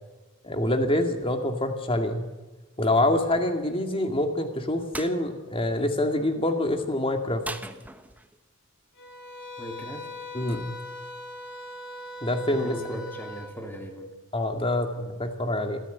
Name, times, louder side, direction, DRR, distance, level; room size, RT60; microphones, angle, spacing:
voice 1, 0.4-2.3 2.8-7.4 10.3-10.7 12.2-13.0 14.3-15.8, left 1 dB, 25° left, 5 dB, 2.3 m, -26 dB
sound 1, 4.9-5.2 7.4-8.4, right 2 dB, 5° right, 0.8 m, -38 dB
sound 2, 9.0-13.5, left 1 dB, 55° left, 3.6 m, -40 dB
voice 2, 9.6-10.1 12.5-14.1 15.0-15.2, equal, 10° left, 3 dB, 2.9 m, -38 dB
26.0 x 14.0 x 9.5 m, 1.2 s
head